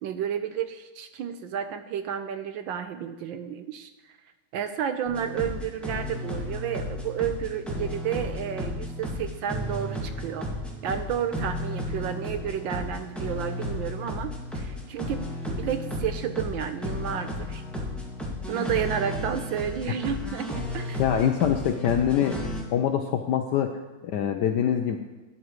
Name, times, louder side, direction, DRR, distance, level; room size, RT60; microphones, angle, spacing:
voice 1, 0.0-3.9 4.5-10.5 10.8-17.6 18.5-21.0, right 8 dB, 75° right, 9 dB, 1.2 m, -31 dB
sound 1, 5.1-22.6, left 1 dB, ahead, 1.7 m, -33 dB
voice 2, 21.0-25.0, left 9 dB, 75° left, 6 dB, 1.0 m, -25 dB
13.0 x 9.9 x 3.1 m, 1.2 s
omnidirectional pair, 2.4 m